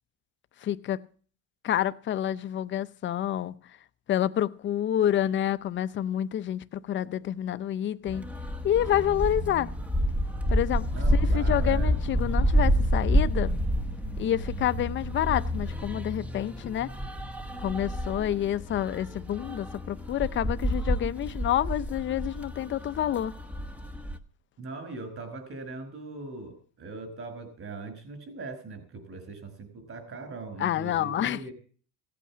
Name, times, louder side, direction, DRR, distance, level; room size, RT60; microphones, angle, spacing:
voice 1, 0.6-1.0 1.6-3.5 4.1-8.2 8.6-9.7 10.5-13.5 14.2-16.9 17.6-23.4 30.6-31.4, left 11 dB, 30° left, 0.6 m, -28 dB
sound 1, 8.1-24.2, equal, 5° right, 0.9 m, -29 dB
voice 2, 10.9-12.0 24.6-31.5, right 3 dB, 35° right, 5.3 m, -40 dB
16.5 x 8.5 x 7.3 m
cardioid pair, 140°, 38 cm